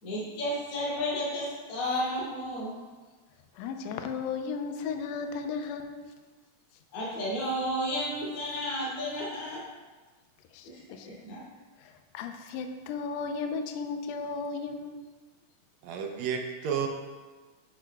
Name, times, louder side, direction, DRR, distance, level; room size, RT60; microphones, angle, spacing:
voice 1, 0.0-2.7 6.9-9.6 11.0-11.4, equal, 45° left, -9 dB, 3.1 m, -32 dB
voice 2, 3.5-6.1 10.5-11.1 11.8-15.0, left 5 dB, 80° left, 6 dB, 1.6 m, -35 dB
voice 3, 15.8-16.9, right 7 dB, 75° right, 4 dB, 1.8 m, -31 dB
11.0 x 6.0 x 2.2 m, 1.3 s
omnidirectional pair, 3.4 m